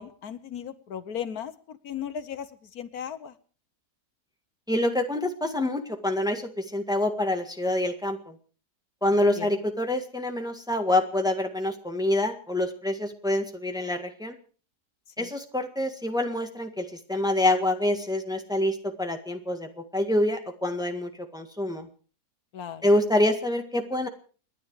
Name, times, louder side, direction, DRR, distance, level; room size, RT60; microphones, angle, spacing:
voice 1, 0.0-2.5 2.7-3.3 9.3-9.5 15.2-15.3 22.5-22.8, left 8 dB, 70° left, 12 dB, 1.4 m, -36 dB
voice 2, 4.7-8.3 9.0-14.3 15.2-21.9 22.8-24.1, left 1 dB, 5° right, 5 dB, 1.6 m, -26 dB
29.5 x 10.5 x 4.8 m, 0.40 s
omnidirectional pair, 1.7 m